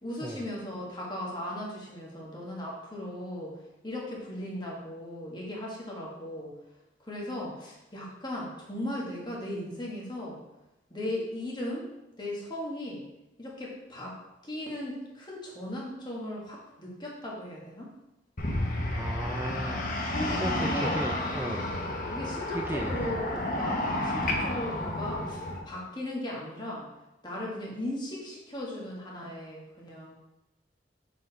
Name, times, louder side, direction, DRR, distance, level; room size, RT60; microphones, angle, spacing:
voice 1, 0.0-3.5 3.8-6.5 7.0-10.4 10.9-11.9 12.2-13.0 13.4-14.2 14.4-17.9 20.1-21.0 21.4-21.8 22.1-26.9 27.2-30.2, left 1 dB, 25° left, -3 dB, 1.7 m, -37 dB
sound 1, 18.4-25.6, left 1 dB, 50° left, 1.1 m, -31 dB
voice 2, 18.9-21.7 22.5-23.1, right 1 dB, 15° right, 2 dB, 0.3 m, -36 dB
6.4 x 5.0 x 4.2 m, 0.95 s
head